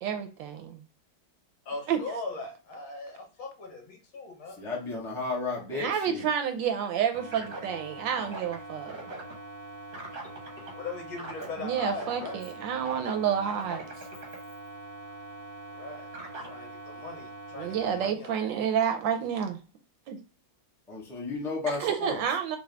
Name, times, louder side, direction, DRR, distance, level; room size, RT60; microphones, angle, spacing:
voice 1, 0.0-0.8 1.9-2.0 5.7-8.9 11.6-13.8 17.6-19.6 20.1-20.2 21.7-22.6, right 8 dB, 75° right, 1.2 m, -29 dB
voice 2, 1.7-4.6 10.8-12.4 15.7-16.1 16.5-18.4, left 3 dB, 80° left, 2.0 m, -39 dB
voice 3, 4.6-6.3 20.9-22.2, left 3 dB, ahead, 0.6 m, -33 dB
sound 1, 7.1-18.1, right 2 dB, 40° right, 0.8 m, -42 dB
4.6 x 2.3 x 3.3 m
omnidirectional pair, 2.2 m